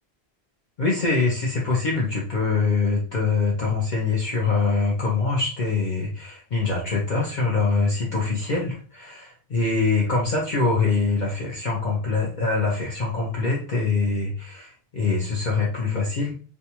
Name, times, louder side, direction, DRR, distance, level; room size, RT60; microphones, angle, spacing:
voice 1, 0.8-16.3, left 4 dB, 50° left, -3 dB, 0.7 m, -24 dB
2.6 x 2.2 x 2.8 m, 0.39 s
omnidirectional pair, 1.1 m